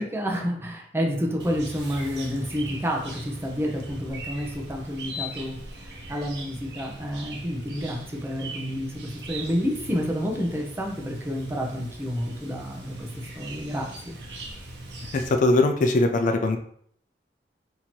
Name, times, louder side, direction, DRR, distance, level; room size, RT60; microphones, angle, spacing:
voice 1, 0.0-13.1 13.3-14.2, equal, 15° right, 0 dB, 0.6 m, -29 dB
Chirp tweet, 1.4-15.3, right 1 dB, 70° right, 0.8 m, -40 dB
voice 2, 15.1-16.6, left 2 dB, 45° left, 6 dB, 0.3 m, -21 dB
2.9 x 2.7 x 4.3 m, 0.64 s
head